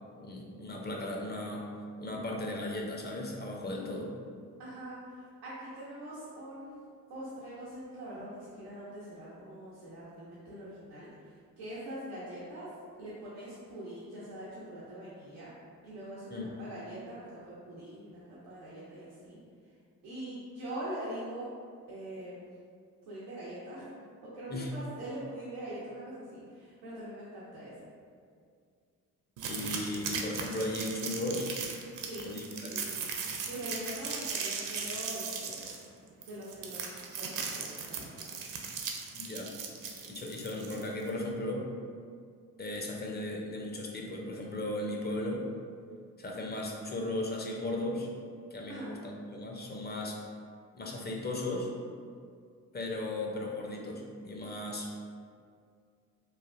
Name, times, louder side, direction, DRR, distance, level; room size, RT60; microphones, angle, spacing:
voice 1, 0.2-1.7 2.0-4.1 16.3-16.5 24.5-24.7 29.4-31.5 32.2-32.7 39.1-39.5 40.0-41.7 42.6-45.4 46.2-48.1 48.5-50.2 50.7-51.7 52.7-54.9, left 1 dB, 25° left, -1 dB, 0.5 m, -36 dB
voice 2, 4.6-12.7 13.0-15.5 15.8-19.4 20.0-21.5 21.9-22.5 23.1-27.9 32.0-33.0 33.4-35.7 36.2-36.9 37.2-38.4 48.7-49.0, right 1 dB, 90° right, -10 dB, 0.7 m, -43 dB
sound 1, 29.4-41.1, right 5 dB, 50° right, 0.5 m, -38 dB
3.2 x 2.2 x 2.4 m, 2.2 s
hypercardioid pair, 50°, 41 cm